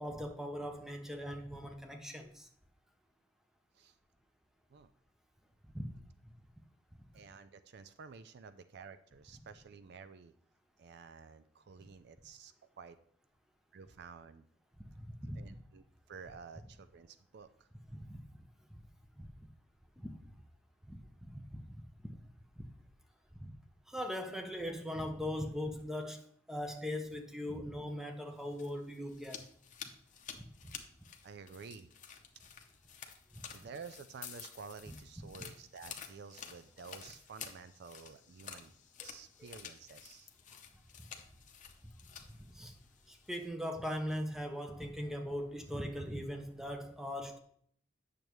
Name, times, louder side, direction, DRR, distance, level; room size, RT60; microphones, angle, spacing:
voice 1, 0.0-2.5 5.7-6.0 14.9-15.5 17.9-18.8 19.2-19.3 20.0-20.1 20.9-22.1 22.6-22.7 23.4-23.5 23.9-26.2 26.5-29.5 30.3-30.7 34.9-35.0 42.4-42.7 43.1-47.4, equal, ahead, 0.7 m, -40 dB
voice 2, 7.1-10.3 10.8-13.0 13.7-14.5 15.4-17.7 31.2-31.9 33.5-38.7 39.0-40.3, right 5 dB, 55° right, 0.4 m, -51 dB
sound 1, 28.3-43.5, left 7 dB, 40° left, 0.8 m, -51 dB
8.8 x 6.6 x 3.1 m
head